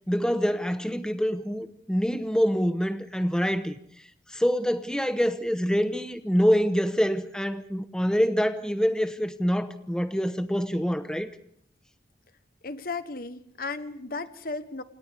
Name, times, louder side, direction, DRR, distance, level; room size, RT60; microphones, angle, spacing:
voice 1, 0.1-3.8 4.3-11.3, equal, 5° left, 1.0 m, -25 dB
voice 2, 12.6-14.8, left 3 dB, 55° left, 1.1 m, -35 dB
29.5 x 27.5 x 3.5 m
head